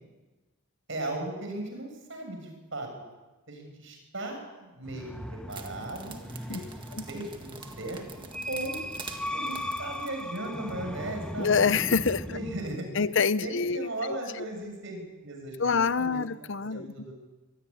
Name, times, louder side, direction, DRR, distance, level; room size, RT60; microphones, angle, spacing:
voice 1, 0.9-2.9 3.5-6.2 6.5-6.7 7.1-8.0 8.5-8.8 9.3-11.5 12.1-13.1 13.4-16.2 16.7-17.1, right 1 dB, 60° right, 3 dB, 7.1 m, -37 dB
sound 1, 4.8-12.8, left 1 dB, 5° left, 0.9 m, -38 dB
sound 2, 5.5-10.8, right 3 dB, 20° right, 1.8 m, -45 dB
voice 2, 11.4-12.2 12.9-14.4 15.6-16.9, left 5 dB, 55° left, 15 dB, 0.7 m, -26 dB
24.5 x 17.5 x 10.0 m, 1.2 s
head